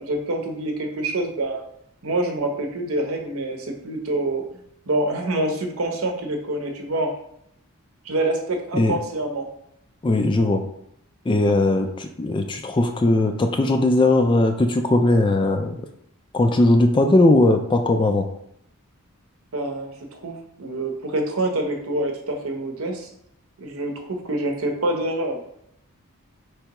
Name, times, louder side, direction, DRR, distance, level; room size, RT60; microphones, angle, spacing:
voice 1, 0.0-1.6 2.0-7.2 8.0-9.5 19.5-23.1 23.6-25.5, right 1 dB, 75° right, 4 dB, 0.8 m, -26 dB
voice 2, 10.0-10.6 11.3-15.8 16.3-18.2, left 2 dB, 20° left, 6 dB, 0.3 m, -19 dB
4.6 x 3.3 x 2.9 m, 0.73 s
head